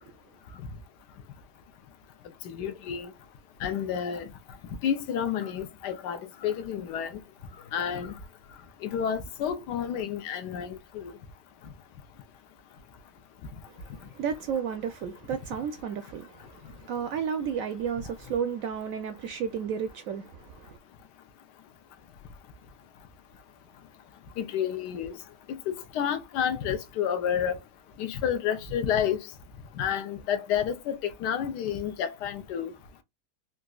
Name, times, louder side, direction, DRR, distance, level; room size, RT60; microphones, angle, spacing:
voice 1, 2.4-3.1 3.6-4.3 4.8-7.2 7.7-8.1 8.8-11.1 24.4-25.1 25.5-27.6 28.0-29.2 29.8-32.7, left 8 dB, 80° left, 1.2 m, -30 dB
voice 2, 13.7-20.8, right 7 dB, 70° right, 0.8 m, -33 dB
3.9 x 2.3 x 2.2 m
omnidirectional pair, 1.8 m